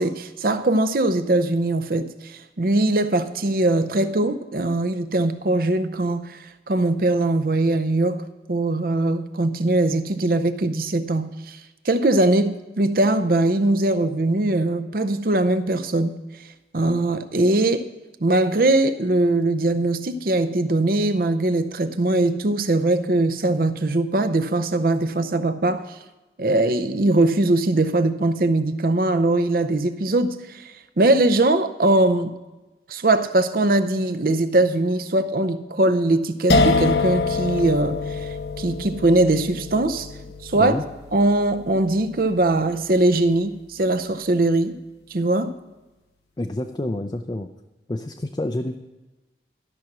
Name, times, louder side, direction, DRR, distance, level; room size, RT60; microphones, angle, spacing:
voice 1, 0.0-6.4 6.7-11.6 11.8-16.1 16.7-17.9 18.2-25.8 26.4-32.4 32.9-40.1 40.4-40.7 41.1-44.8 45.1-45.5, right 2 dB, 55° right, 11 dB, 0.7 m, -21 dB
sound 1, 36.5-43.4, left 3 dB, 70° left, 0.8 m, -26 dB
voice 2, 40.5-40.8 46.4-47.5 47.9-48.8, left 1 dB, 25° left, 5 dB, 0.4 m, -28 dB
13.0 x 6.0 x 6.1 m, 1.1 s
head